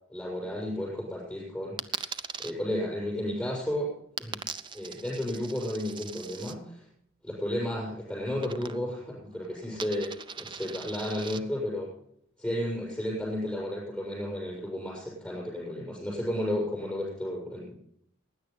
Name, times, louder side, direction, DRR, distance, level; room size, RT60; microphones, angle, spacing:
voice 1, 0.1-2.0 2.4-3.9 4.2-4.4 4.7-6.8 7.2-10.1 10.3-11.9 12.4-17.7, left 1 dB, 5° left, -4 dB, 6.4 m, -33 dB
Coin (dropping), 1.8-2.5 4.2-6.5 8.4-9.0 9.3-11.4, right 6 dB, 20° right, 0.4 m, -40 dB
16.0 x 9.9 x 5.5 m, 0.70 s
head